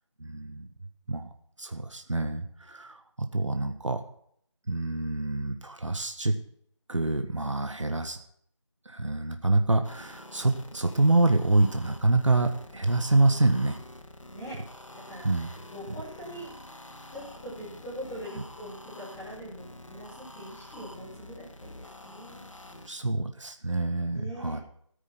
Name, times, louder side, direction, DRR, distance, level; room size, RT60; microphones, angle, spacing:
voice 1, 0.2-0.7 1.1-1.3 1.6-4.0 4.7-6.3 6.9-8.2 8.8-13.7 15.2-15.5 22.9-24.6, right 2 dB, 70° right, 7 dB, 1.6 m, -26 dB
sound 1, 9.8-22.9, left 1 dB, 80° left, 2.2 m, -47 dB
voice 2, 13.2-13.6 14.3-14.5 15.0-16.5 17.1-23.0 24.1-24.6, equal, 5° left, -10 dB, 1.3 m, -43 dB
14.0 x 9.4 x 5.9 m, 0.66 s
figure-of-eight pair, 175°, 16 cm